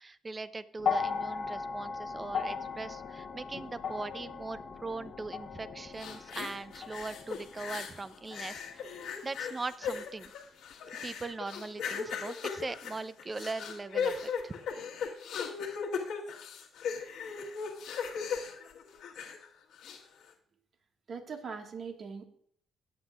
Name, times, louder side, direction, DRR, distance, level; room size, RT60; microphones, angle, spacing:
voice 1, 0.0-8.9 9.2-10.3 11.0-14.5, right 3 dB, 25° right, 14 dB, 0.6 m, -40 dB
sound 1, 0.8-9.1 10.2-10.3, left 5 dB, 50° left, 1.0 m, -38 dB
sound 2, 6.0-8.0 8.3-19.4 19.8-20.0, left 6 dB, 85° left, 1.5 m, -37 dB
voice 2, 21.1-22.3, right 5 dB, 55° right, 4 dB, 1.7 m, -41 dB
18.5 x 8.1 x 2.4 m, 0.63 s
cardioid pair, 90°, 0 cm